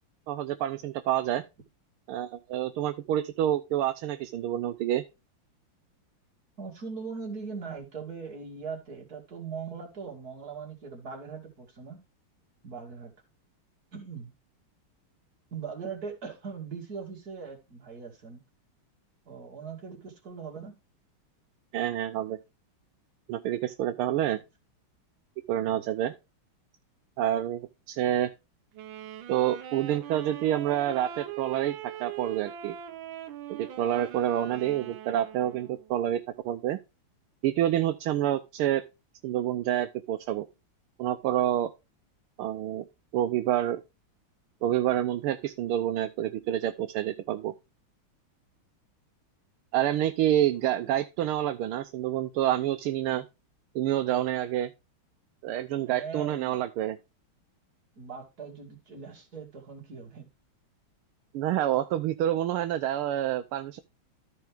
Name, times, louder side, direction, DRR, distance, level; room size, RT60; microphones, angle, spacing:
voice 1, 0.3-1.4 2.1-5.0 21.7-22.4 23.3-24.4 25.5-26.1 27.2-27.6 27.9-28.3 29.3-32.7 33.5-36.8 37.4-38.8 39.2-40.4 41.0-41.7 42.4-42.8 43.1-43.8 44.6-47.5 49.7-53.2 53.7-54.7 55.4-57.0 61.3-63.8, right 12 dB, 90° right, 1.5 m, -28 dB
voice 2, 6.6-12.0 12.6-13.1 13.9-14.3 15.5-18.4 19.3-20.8 25.7-25.8 34.4-34.8 50.6-50.9 55.9-56.6 58.0-60.3, right 5 dB, 45° right, 2.8 m, -40 dB
Wind instrument woodwind instrument, 28.7-35.9, right 10 dB, 70° right, 1.5 m, -41 dB
13.5 x 4.7 x 3.5 m
omnidirectional pair, 2.3 m